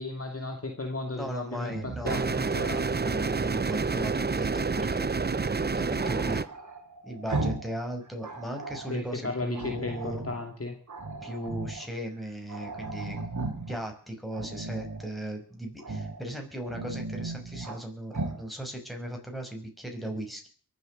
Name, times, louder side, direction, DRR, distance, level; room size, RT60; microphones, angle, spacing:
voice 1, 0.0-2.8 8.9-10.7, left 2 dB, 35° left, 4 dB, 2.6 m, -35 dB
voice 2, 1.1-5.1 5.4-6.4 7.0-10.2 11.2-13.3 13.7-20.5, right 1 dB, ahead, 3 dB, 6.0 m, -37 dB
Growling, 1.6-3.6 6.0-7.8 8.0-8.9 9.5-10.4 10.9-11.9 12.2-12.3 12.5-13.8 14.3-15.1 15.8-16.2 16.6-17.8 18.1-18.4, right 3 dB, 45° right, 3.2 m, -36 dB
sound 1, 2.1-6.5, right 4 dB, 25° right, 0.7 m, -28 dB
23.5 x 8.4 x 6.5 m, 0.42 s
cardioid pair, 45°, 40 cm